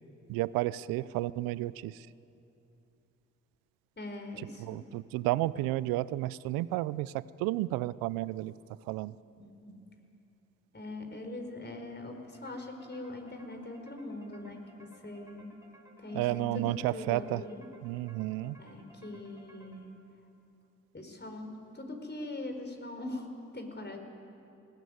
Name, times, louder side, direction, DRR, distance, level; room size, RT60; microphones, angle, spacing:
voice 1, 0.3-2.1 4.4-8.5 8.9-9.2 16.1-17.4 17.8-18.6, right 17 dB, 90° right, 19 dB, 0.5 m, -32 dB
voice 2, 4.0-4.7 9.4-9.8 10.7-15.5 16.0-17.6 18.6-19.9 20.9-24.0, left 2 dB, 30° left, 4 dB, 4.9 m, -42 dB
sound 1, 12.3-20.2, right 1 dB, 10° right, 5.1 m, -60 dB
19.5 x 19.5 x 9.4 m, 2.7 s
hypercardioid pair, 40°, 34 cm